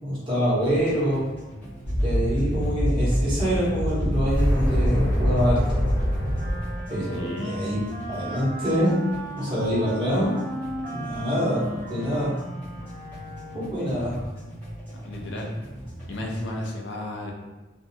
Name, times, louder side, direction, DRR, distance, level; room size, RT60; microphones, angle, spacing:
voice 1, 0.0-1.3 2.0-5.8 6.9-7.8 8.1-8.9 9.4-10.3 10.8-11.6 11.9-12.3 13.5-14.2, equal, 25° right, -10 dB, 1.0 m, -25 dB
sound 1, 0.6-16.6, equal, 10° left, 0.8 m, -40 dB
sound 2, 1.8-6.8, equal, 75° right, 0.9 m, -24 dB
Wind instrument woodwind instrument, 5.8-13.9, right 1 dB, 50° right, 0.4 m, -36 dB
voice 2, 7.1-7.6 14.9-15.5 16.1-17.3, left 1 dB, 70° left, -1 dB, 0.4 m, -33 dB
2.6 x 2.1 x 2.7 m, 1.1 s
head